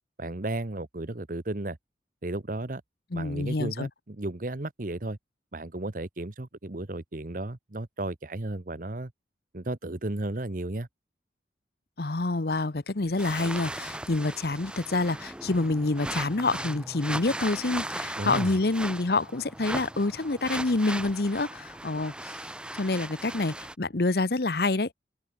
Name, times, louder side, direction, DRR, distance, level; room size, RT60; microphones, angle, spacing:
voice 1, 0.2-1.8 2.2-2.8 3.1-5.2 5.5-9.1 9.5-10.9 18.2-18.5, right 2 dB, 45° right, 1.1 m, -34 dB
voice 2, 3.1-3.9 12.0-22.4 22.7-24.9, left 2 dB, 55° left, 0.9 m, -27 dB
sound 1, 13.2-23.7, right 1 dB, 5° right, 0.7 m, -37 dB
open air
head